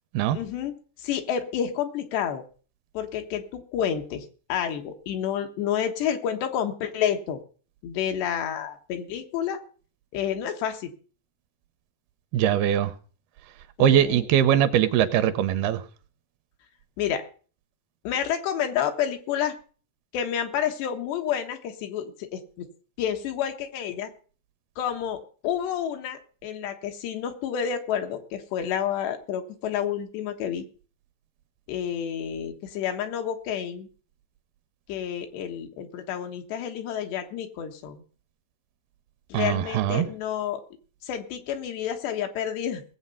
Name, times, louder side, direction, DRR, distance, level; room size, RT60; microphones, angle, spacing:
voice 1, 0.3-2.4 3.0-7.4 7.8-9.6 10.1-10.9 13.8-14.3 17.0-17.3 18.1-19.6 20.1-22.7 23.0-24.1 24.8-30.7 31.7-33.9 34.9-38.0 39.3-40.6 41.0-42.8, left 9 dB, 80° left, 5 dB, 3.5 m, -29 dB
voice 2, 12.3-12.9 13.8-15.8 39.3-40.1, right 10 dB, 80° right, 11 dB, 2.5 m, -21 dB
19.0 x 7.9 x 5.5 m, 0.41 s
omnidirectional pair, 4.8 m